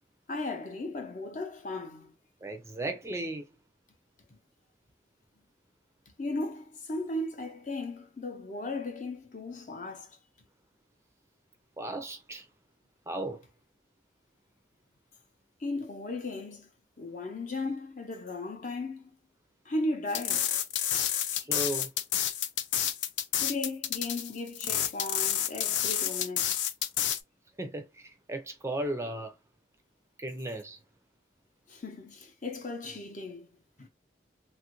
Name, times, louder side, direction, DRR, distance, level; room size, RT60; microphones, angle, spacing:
voice 1, 0.3-2.1 6.2-10.2 15.6-16.7 17.0-19.1 19.6-20.5 23.4-26.6 31.7-33.5 33.8-33.9, left 2 dB, 45° left, 0.6 m, -36 dB
voice 2, 2.4-3.5 11.8-12.5 13.1-13.4 21.4-21.9 27.6-29.3 30.2-30.8, right 1 dB, 15° right, 0.4 m, -35 dB
sound 1, 20.1-27.2, left 10 dB, 85° left, 0.4 m, -29 dB
3.0 x 2.4 x 2.9 m
head